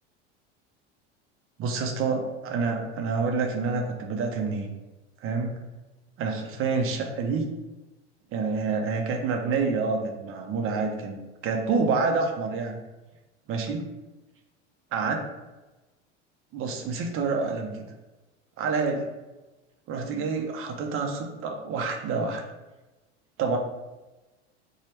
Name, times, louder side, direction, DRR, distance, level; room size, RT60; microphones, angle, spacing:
voice 1, 1.6-4.7 5.2-5.6 6.2-7.5 8.3-12.8 13.5-13.9 14.9-15.2 16.5-17.8 18.6-19.1 19.9-22.4 23.4-23.6, right 4 dB, 40° right, 3 dB, 0.6 m, -28 dB
2.9 x 2.2 x 3.2 m, 1.1 s
hypercardioid pair, 90°, 35 cm